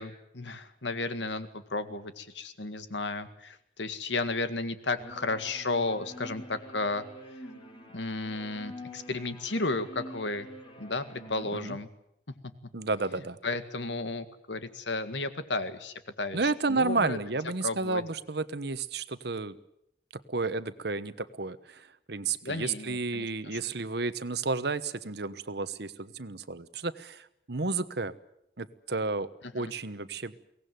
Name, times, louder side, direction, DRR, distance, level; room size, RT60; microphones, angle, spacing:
voice 1, 0.0-7.0 7.9-10.5 10.8-11.9 13.4-17.2 17.6-18.0 22.4-23.3 29.5-29.7, left 3 dB, 85° left, 10 dB, 1.9 m, -33 dB
sound 1, 5.0-11.4, equal, 30° left, 4.7 m, -47 dB
voice 2, 11.3-11.8 12.7-13.4 16.3-19.5 20.3-28.1 28.6-29.3 29.5-30.3, right 3 dB, 65° right, 14 dB, 1.1 m, -32 dB
23.0 x 18.0 x 9.4 m, 0.79 s
head